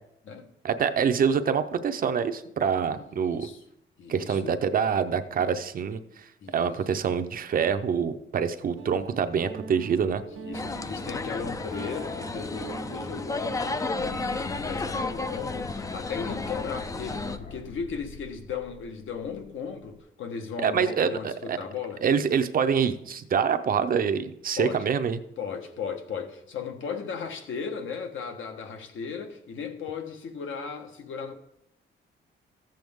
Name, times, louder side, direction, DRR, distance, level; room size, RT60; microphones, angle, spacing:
voice 1, 0.6-3.5 4.1-6.3 6.5-10.2 20.6-21.6 22.0-25.2, right 7 dB, 45° right, 0.6 m, -26 dB
voice 2, 2.9-3.6 4.0-4.5 6.4-6.8 10.4-22.0 24.6-24.8 25.4-31.3, left 6 dB, 70° left, 1.3 m, -36 dB
Guitar, 8.7-14.4, right 5 dB, 90° right, 1.1 m, -43 dB
sound 1, 10.5-17.4, left 3 dB, 15° left, 0.4 m, -33 dB
sound 2, 14.0-20.0, left 4 dB, 50° left, 1.8 m, -45 dB
14.5 x 7.8 x 3.6 m
wide cardioid pair, 165°, 21 cm